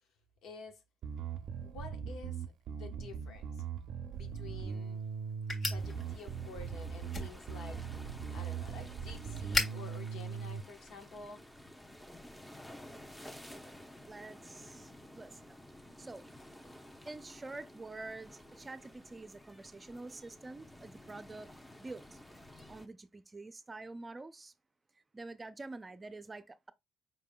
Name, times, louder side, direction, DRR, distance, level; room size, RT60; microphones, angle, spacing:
voice 1, 0.4-0.8 1.6-3.6 4.1-5.1 5.7-7.8 8.3-11.4, left 4 dB, 85° left, 1.0 m, -50 dB
Bass guitar, 1.0-10.6, right 6 dB, 75° right, 0.5 m, -40 dB
sound 1, 4.1-11.3, left 3 dB, 50° left, 1.5 m, -41 dB
sound 2, 5.8-22.9, left 1 dB, 10° left, 0.8 m, -53 dB
voice 2, 14.1-15.4 16.0-16.2 17.1-21.5 21.8-22.2 22.7-24.5 25.1-26.7, right 3 dB, 25° right, 0.5 m, -47 dB
5.2 x 3.5 x 2.2 m
cardioid pair, 90°, 0 cm